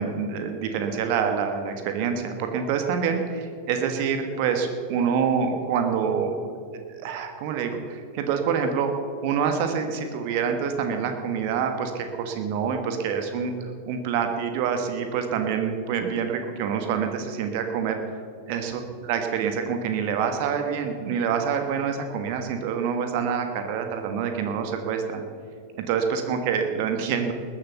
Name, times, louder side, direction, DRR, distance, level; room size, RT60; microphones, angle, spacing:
voice 1, 0.0-6.3 7.0-8.9 9.2-13.5 13.9-18.0 18.5-25.2 25.8-27.3, right 6 dB, 45° right, 5 dB, 1.4 m, -26 dB
20.5 x 7.6 x 7.0 m, 2.4 s
figure-of-eight pair, 90°, 0 cm